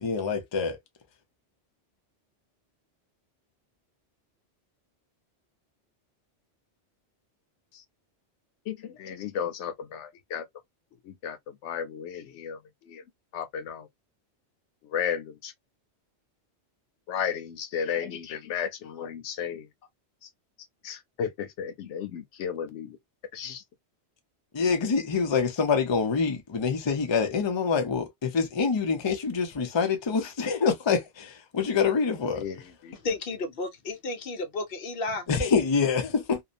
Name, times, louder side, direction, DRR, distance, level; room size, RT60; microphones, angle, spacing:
voice 1, 0.0-0.8 24.5-32.4 35.3-36.4, left 5 dB, 35° left, 0.4 m, -26 dB
voice 2, 8.7-10.5 11.0-13.0 13.3-13.9 14.8-15.5 17.1-19.7 20.2-20.3 20.8-23.0 23.3-23.6 32.4-33.0, left 8 dB, 90° left, 0.9 m, -34 dB
voice 3, 32.9-35.3, left 2 dB, 60° left, 0.8 m, -32 dB
2.7 x 2.1 x 2.4 m
omnidirectional pair, 1.2 m